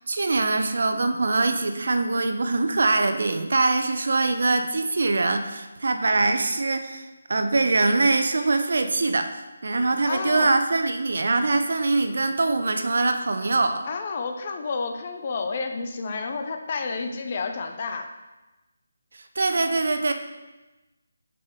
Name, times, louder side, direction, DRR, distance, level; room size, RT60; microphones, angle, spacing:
voice 1, 0.1-13.9 19.4-20.1, right 3 dB, 60° right, 7 dB, 0.6 m, -23 dB
voice 2, 10.1-10.5 13.8-18.1, left 4 dB, 35° left, 5 dB, 0.6 m, -30 dB
6.4 x 4.3 x 3.7 m, 1.1 s
figure-of-eight pair, 150°, 0 cm